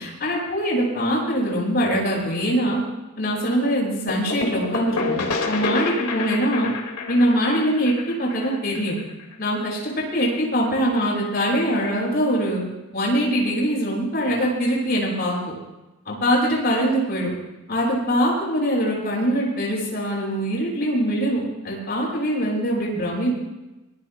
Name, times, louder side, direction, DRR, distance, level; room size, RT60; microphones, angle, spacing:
voice 1, 0.0-2.8 3.2-6.7 7.1-8.9 9.4-12.6 12.9-15.4 16.0-17.3 17.7-23.3, equal, 45° left, -2 dB, 6.7 m, -23 dB
sound 1, 4.1-9.7, left 4 dB, 85° left, 2.1 m, -29 dB
24.5 x 20.5 x 2.2 m, 1.0 s
head